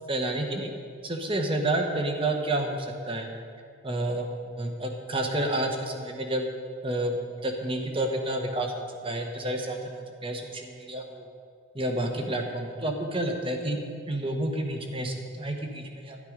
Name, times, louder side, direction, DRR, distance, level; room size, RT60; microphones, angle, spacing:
voice 1, 0.1-0.7 1.0-3.3 3.8-6.5 6.8-11.3 11.7-13.8 14.1-16.2, right 1 dB, 25° right, 3 dB, 1.1 m, -30 dB
11.5 x 10.5 x 5.1 m, 2.3 s
head